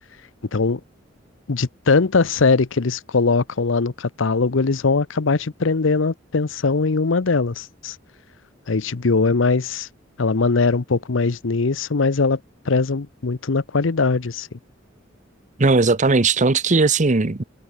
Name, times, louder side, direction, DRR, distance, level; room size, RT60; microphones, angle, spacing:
voice 1, 1.5-8.0 8.7-9.9 10.2-12.4 12.6-14.5, left 4 dB, 80° left, 0.8 m, -20 dB
voice 2, 15.6-17.4, right 3 dB, 40° right, 0.9 m, -17 dB
head